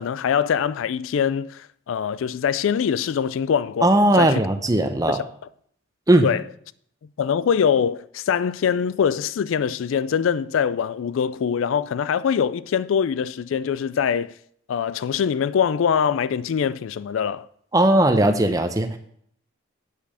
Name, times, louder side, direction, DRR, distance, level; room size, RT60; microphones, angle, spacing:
voice 1, 0.0-4.4 5.1-5.3 6.2-6.4 7.2-14.3 14.7-17.5, left 7 dB, 75° left, 0.3 m, -23 dB
voice 2, 3.8-5.2 6.1-6.3 17.7-19.0, right 1 dB, 15° right, 0.7 m, -18 dB
8.3 x 5.9 x 5.6 m
head